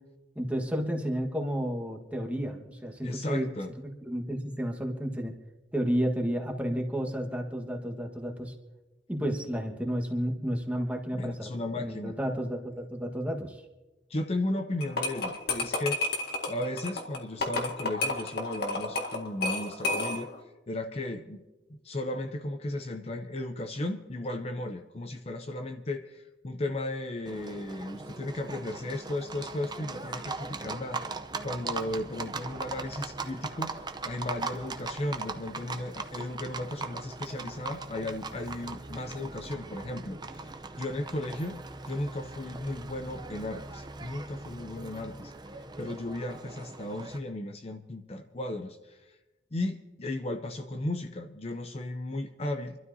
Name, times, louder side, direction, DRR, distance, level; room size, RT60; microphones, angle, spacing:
voice 1, 0.3-3.5 4.0-5.3 5.7-8.5 9.1-11.5 11.8-13.6, equal, 10° right, 1 dB, 1.5 m, -31 dB
voice 2, 3.0-3.7 11.1-12.1 14.1-16.0 16.5-20.3 20.7-21.4 21.7-31.0 31.4-49.1 49.5-52.8, left 1 dB, 35° left, 6 dB, 0.6 m, -35 dB
sound 1, 14.8-20.4, left 2 dB, 60° left, 1.8 m, -31 dB
Livestock farm animals working animals, 27.3-47.2, right 3 dB, 25° right, 0.7 m, -40 dB
27.5 x 12.5 x 2.8 m, 1.1 s
head